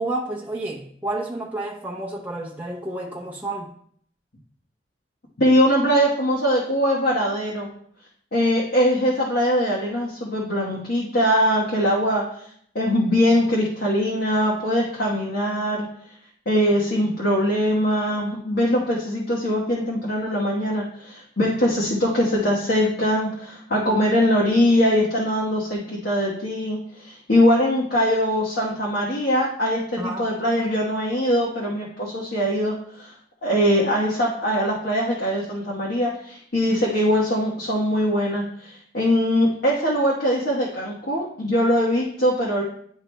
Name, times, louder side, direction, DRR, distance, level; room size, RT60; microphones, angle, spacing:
voice 1, 0.0-3.7 30.0-30.3, right 2 dB, 10° right, 0.7 m, -30 dB
voice 2, 5.4-7.7 8.3-12.2 12.7-15.9 16.5-33.1 33.4-42.6, equal, 60° left, 1.2 m, -22 dB
10.0 x 4.7 x 2.2 m
head